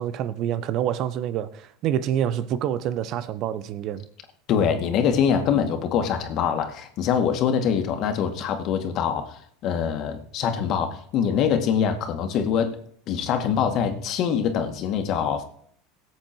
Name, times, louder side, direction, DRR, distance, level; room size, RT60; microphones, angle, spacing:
voice 1, 0.0-4.0, right 10 dB, 50° right, 0.9 m, -27 dB
voice 2, 4.5-12.8 13.1-15.4, left 7 dB, 50° left, 2.1 m, -24 dB
17.5 x 7.9 x 4.6 m
supercardioid pair, 115°, 0 cm